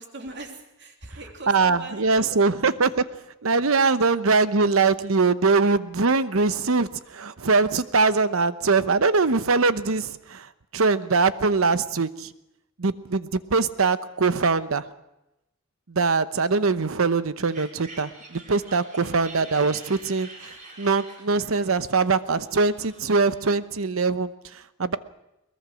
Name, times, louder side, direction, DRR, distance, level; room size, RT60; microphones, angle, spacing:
voice 1, 0.0-2.6 18.4-18.5, right 2 dB, 55° right, 3 dB, 3.2 m, -41 dB
voice 2, 1.5-3.0 3.4-12.3 12.8-14.9 15.9-25.0, right 4 dB, 80° right, 14 dB, 0.9 m, -22 dB
sound 1, 17.4-23.5, right 2 dB, 40° right, 4.6 m, -46 dB
22.0 x 20.5 x 6.3 m, 0.89 s
head